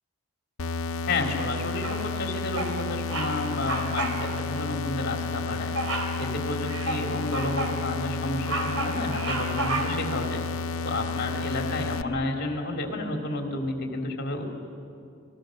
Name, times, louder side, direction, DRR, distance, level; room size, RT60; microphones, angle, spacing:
sound 1, 0.6-12.0, left 4 dB, 75° left, 0.7 m, -31 dB
voice 1, 1.1-5.7 6.2-10.4 10.8-14.5, left 2 dB, 50° left, 2 dB, 3.1 m, -31 dB
Bird vocalization bird call bird song, 1.8-2.2 2.5-2.8 3.1-3.3 3.6-4.2 4.5-4.7 5.7-6.2 6.7-7.8 8.2-10.1, right 2 dB, 75° right, 3.8 m, -31 dB
30.0 x 21.0 x 6.5 m, 2.6 s
head